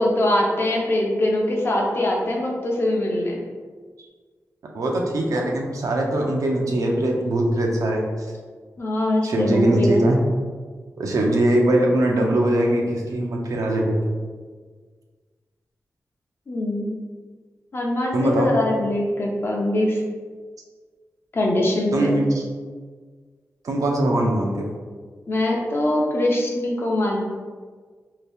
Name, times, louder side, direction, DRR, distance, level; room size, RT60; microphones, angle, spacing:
voice 1, 0.0-3.4 8.8-10.0 16.5-16.9 17.7-20.0 21.3-22.1 25.3-27.3, left 1 dB, 45° left, -1 dB, 0.6 m, -22 dB
voice 2, 4.6-8.0 9.2-10.2 11.0-14.0 18.1-18.5 21.9-22.4 23.6-24.7, right 1 dB, 75° right, 0 dB, 0.5 m, -21 dB
2.8 x 2.6 x 3.3 m, 1.5 s
wide cardioid pair, 150°, 6 cm